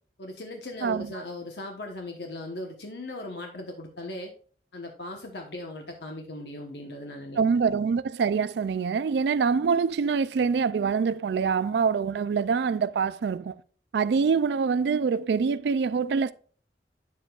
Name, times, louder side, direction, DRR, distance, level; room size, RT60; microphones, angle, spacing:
voice 1, 0.2-4.3 4.7-7.4, left 1 dB, 70° left, 1.1 m, -38 dB
voice 2, 7.4-13.5 13.9-16.3, right 5 dB, 75° right, 0.3 m, -25 dB
9.4 x 7.5 x 2.4 m
head